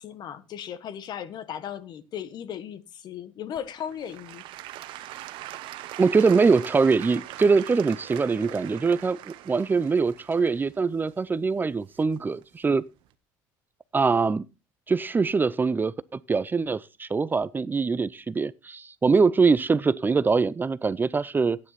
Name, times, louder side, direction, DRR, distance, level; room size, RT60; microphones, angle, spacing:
voice 1, 0.0-4.4, left 9 dB, 55° left, 1.4 m, -37 dB
Applause / Crowd, 3.5-12.4 13.0-13.1, right 14 dB, 70° right, 1.1 m, -42 dB
voice 2, 6.0-12.8 13.9-14.5 14.9-21.6, right 4 dB, 20° right, 0.5 m, -23 dB
12.0 x 9.7 x 4.1 m
supercardioid pair, 90°, 9 cm